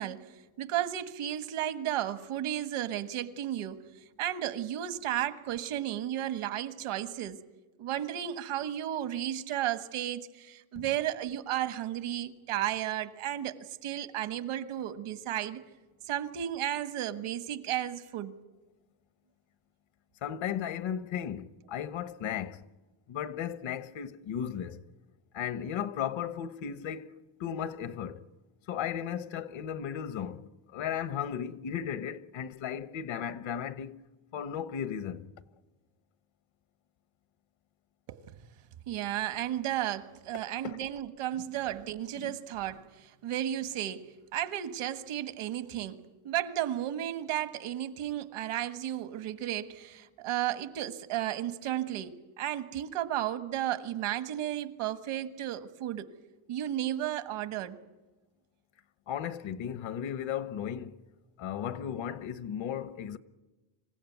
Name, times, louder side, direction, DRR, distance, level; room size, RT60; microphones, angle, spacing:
voice 1, 0.0-3.8 4.2-7.4 7.8-15.6 16.0-18.4 38.1-38.4 38.9-44.0 44.3-56.1 56.5-57.8, right 12 dB, 85° right, 1.6 m, -33 dB
voice 2, 20.2-22.6 23.1-24.8 25.3-28.2 28.7-34.0 34.3-35.3 40.6-40.8 42.1-42.4 59.1-61.0 61.4-63.2, left 9 dB, 70° left, 1.2 m, -35 dB
26.5 x 16.0 x 9.3 m
cardioid pair, 165°, 49 cm